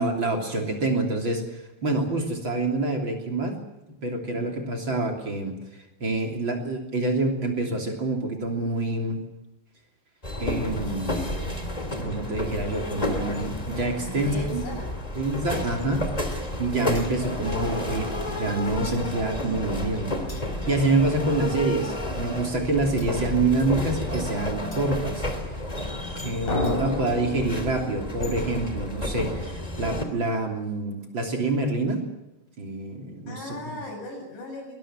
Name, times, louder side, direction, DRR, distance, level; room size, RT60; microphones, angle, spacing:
voice 1, 0.0-3.6 4.0-5.6 6.0-9.2 10.4-11.2 12.0-14.7 15.2-16.0 16.6-20.1 20.7-25.2 26.2-32.1 32.6-33.4, right 2 dB, 35° right, 3 dB, 3.6 m, -27 dB
voice 2, 4.3-4.7 14.0-14.9 15.4-16.1 26.0-27.5 33.3-34.7, left 2 dB, 85° left, 3 dB, 8.7 m, -39 dB
sound 1, 10.2-30.0, left 1 dB, 10° left, 2.7 m, -31 dB
sound 2, 16.9-17.5 18.9-19.1 20.3-20.9 23.0-23.4 24.7-25.1 26.6-26.8, left 3 dB, 40° left, 5.0 m, -50 dB
Drum, 26.5-29.2, left 2 dB, 60° left, 7.9 m, -33 dB
22.5 x 21.0 x 7.5 m, 0.96 s
omnidirectional pair, 3.8 m